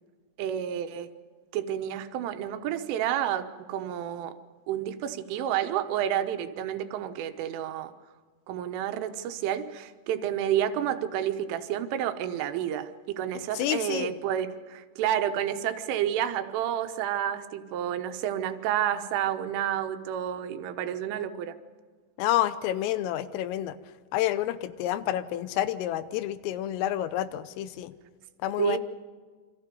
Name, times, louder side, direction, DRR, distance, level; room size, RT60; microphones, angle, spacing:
voice 1, 0.4-1.1 1.5-4.4 4.7-7.9 8.5-21.6 28.6-28.8, right 10 dB, 80° right, 8 dB, 3.5 m, -30 dB
voice 2, 13.5-14.1 22.2-23.8 24.1-27.9 28.4-28.8, left 13 dB, 85° left, 14 dB, 3.5 m, -29 dB
28.0 x 24.5 x 5.3 m, 1.6 s
omnidirectional pair, 5.8 m